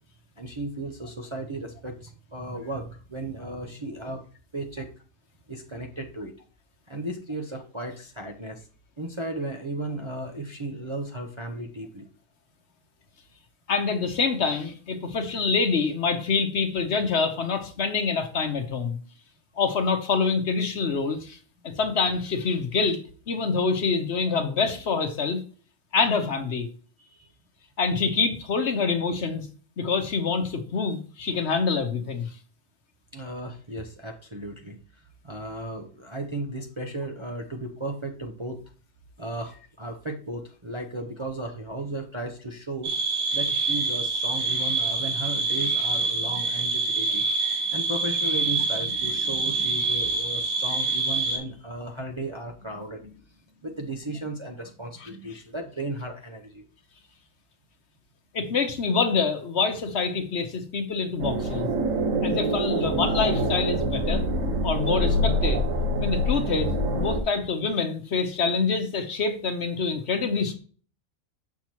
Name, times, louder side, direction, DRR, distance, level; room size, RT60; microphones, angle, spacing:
voice 1, 0.4-4.2 4.5-4.9 5.5-6.3 6.9-8.7 9.0-12.1 27.0-27.3 33.1-34.8 35.2-38.6 39.2-42.9 43.3-47.3 47.6-53.2 53.6-56.6, right 1 dB, 30° right, 1 dB, 0.6 m, -35 dB
voice 2, 13.7-19.0 19.6-21.4 21.6-23.0 23.3-25.4 25.9-26.7 27.8-29.5 29.8-32.3 55.0-55.1 58.3-61.7 62.2-64.2 64.6-65.6 66.0-70.5, left 4 dB, 55° left, 7 dB, 1.1 m, -26 dB
sound 1, 42.8-51.4, right 4 dB, 90° right, 1.9 m, -26 dB
sound 2, 61.2-67.2, equal, 75° right, 1.5 m, -25 dB
6.6 x 5.9 x 3.0 m, 0.40 s
omnidirectional pair, 1.4 m